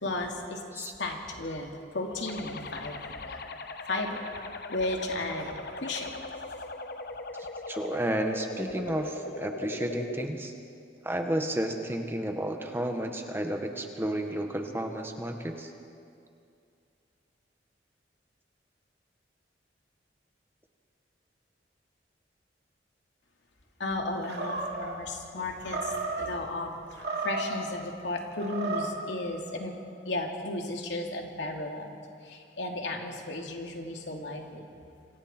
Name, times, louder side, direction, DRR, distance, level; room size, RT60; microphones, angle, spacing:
voice 1, 0.0-0.6 1.0-1.7 1.9-3.4 3.9-4.3 4.7-5.5 5.8-6.1 23.8-25.8 26.2-26.7 27.2-29.7 30.1-32.0 32.3-34.6, left 2 dB, 90° left, 1 dB, 2.7 m, -34 dB
sound 1, 2.3-10.3, left 3 dB, 60° left, 1.0 m, -40 dB
voice 2, 7.7-10.5 11.0-15.7, right 1 dB, 15° right, 4 dB, 1.5 m, -32 dB
Animal, 24.2-25.0 25.6-26.3 26.9-27.6 28.3-29.0, right 3 dB, 65° right, 3.0 m, -33 dB
27.5 x 25.5 x 4.5 m, 2.5 s
head